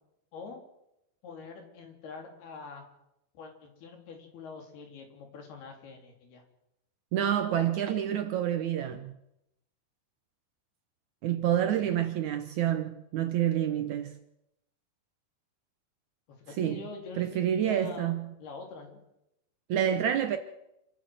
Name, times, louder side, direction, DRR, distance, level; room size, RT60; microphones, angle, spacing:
voice 1, 1.2-2.9 3.4-6.4 11.8-12.0 12.6-12.8 16.3-18.1 18.4-19.0, left 4 dB, 85° left, 5.4 m, -45 dB
voice 2, 7.1-9.1 11.2-14.2 16.6-16.8 17.2-18.3 19.7-20.4, right 10 dB, 70° right, 1.9 m, -28 dB
27.5 x 13.5 x 7.8 m
omnidirectional pair, 4.4 m